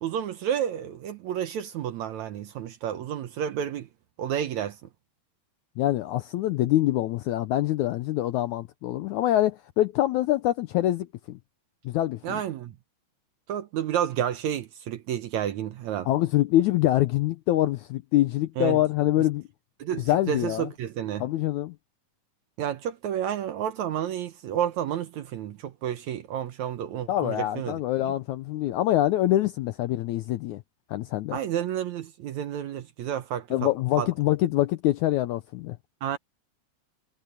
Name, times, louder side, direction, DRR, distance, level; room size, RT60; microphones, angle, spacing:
voice 1, 0.0-3.9 4.2-4.9 12.2-12.8 13.5-16.1 18.6-18.8 19.8-21.3 22.6-27.8 31.3-33.7 34.0-34.1 36.0-36.2, right 10 dB, 70° right, 1.9 m, -30 dB
voice 2, 5.8-11.4 11.9-12.4 16.1-19.5 20.1-20.7 21.2-21.7 27.1-30.6 30.9-31.4 33.5-35.8, left 14 dB, 80° left, 1.8 m, -25 dB
omnidirectional pair, 4.1 m